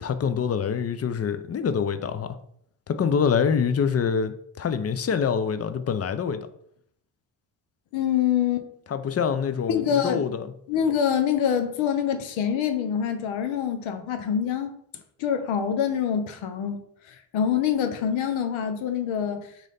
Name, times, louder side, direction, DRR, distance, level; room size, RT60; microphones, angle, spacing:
voice 1, 0.0-2.4 2.9-6.4 8.9-10.5, left 6 dB, 30° left, 0.5 m, -25 dB
voice 2, 7.9-8.7 9.7-10.2 10.7-14.8 15.2-16.8 17.1-19.5, left 8 dB, 75° left, 0.8 m, -25 dB
3.9 x 3.1 x 4.1 m
supercardioid pair, 50°, 49 cm